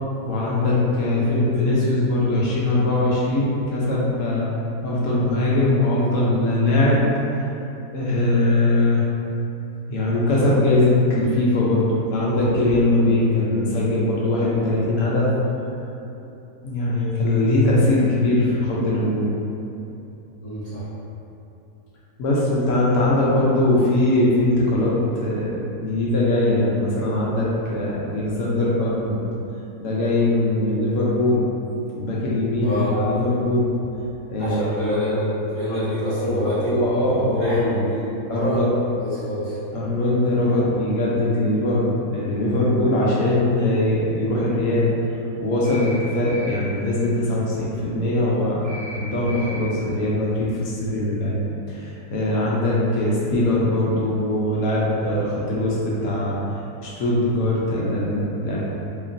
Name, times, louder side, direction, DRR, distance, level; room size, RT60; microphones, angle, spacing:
voice 1, 0.2-4.5 4.8-7.1 7.9-9.0 9.9-15.3 16.6-19.3 22.2-29.2 29.8-31.4 32.0-33.7 34.3-34.7 36.0-37.7 38.3-38.7 39.7-44.9 45.4-51.4 51.7-56.4 56.8-58.6, left 1 dB, 70° left, -6 dB, 0.9 m, -21 dB
voice 2, 20.4-20.8 32.6-32.9 34.4-36.8 37.4-38.6 39.0-39.6, left 1 dB, 40° left, -15 dB, 0.6 m, -26 dB
sound 1, 45.6-46.0 46.2-46.6 48.6-49.0 49.2-49.6, left 1 dB, 35° right, 0.8 m, -36 dB
2.9 x 2.5 x 2.5 m, 2.8 s
omnidirectional pair, 1.7 m